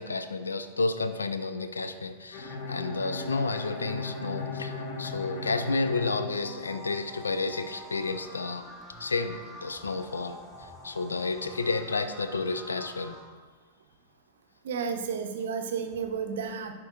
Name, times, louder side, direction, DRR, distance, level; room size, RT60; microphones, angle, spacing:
voice 1, 0.0-8.7 9.0-13.2, left 3 dB, 75° left, 10 dB, 0.4 m, -31 dB
Bowed string instrument, 2.3-7.1, left 3 dB, 50° left, 1.0 m, -37 dB
sound 1, 6.3-13.2, equal, 20° left, 1.6 m, -47 dB
voice 2, 14.6-16.7, right 6 dB, 60° right, 6 dB, 0.6 m, -32 dB
10.5 x 4.4 x 2.4 m, 1.3 s
figure-of-eight pair, 90°, 0 cm